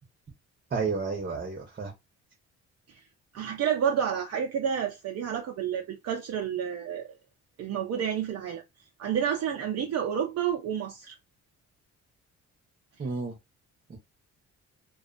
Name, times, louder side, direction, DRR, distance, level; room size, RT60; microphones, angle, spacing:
voice 1, 0.7-1.9 13.0-13.4 13.9-14.0, right 4 dB, 30° right, 0.8 m, -31 dB
voice 2, 3.3-7.1 7.6-8.6 9.0-11.1, right 8 dB, 60° right, 0.6 m, -29 dB
2.4 x 2.1 x 2.5 m
cardioid pair, 90°, 30 cm